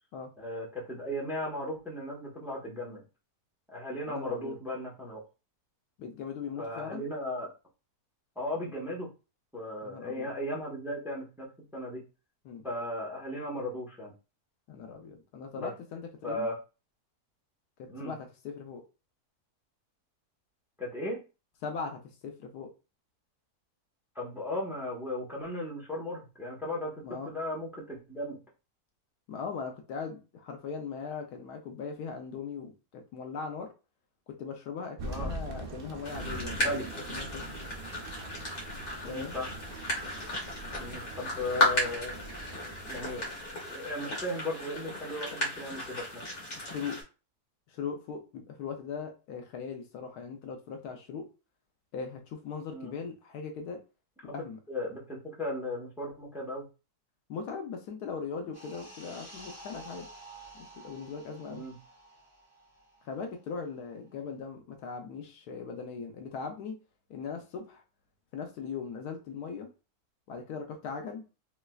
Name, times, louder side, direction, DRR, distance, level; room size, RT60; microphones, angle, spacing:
voice 1, 0.4-3.0 3.7-5.2 6.6-7.5 8.4-9.1 9.5-12.0 12.6-14.1 15.6-15.7 16.2-16.6 17.9-18.1 20.8-21.2 24.1-28.4 35.0-35.3 36.6-36.9 39.0-39.5 40.8-42.2 42.9-46.2 52.7-52.9 54.7-56.6 61.5-61.7, left 1 dB, ahead, -3 dB, 0.7 m, -36 dB
voice 2, 4.1-4.5 6.0-7.1 9.8-10.3 12.4-12.6 14.7-16.5 17.8-18.8 21.6-22.7 27.0-27.3 29.3-33.7 34.4-37.6 39.0-39.4 46.6-47.0 47.7-51.2 51.9-53.8 54.2-54.6 57.3-60.1 60.5-61.6 63.0-66.8 67.1-67.8 68.3-69.7 70.3-71.2, left 5 dB, 85° left, 4 dB, 1.2 m, -39 dB
Thunder, 35.0-43.5, right 2 dB, 80° right, 0.5 m, -42 dB
sound 1, 36.0-47.0, left 1 dB, 50° left, 1.5 m, -35 dB
sound 2, 58.5-63.6 63.9-64.1, right 1 dB, 25° left, 1.1 m, -50 dB
3.2 x 3.0 x 2.3 m, 0.31 s
omnidirectional pair, 1.6 m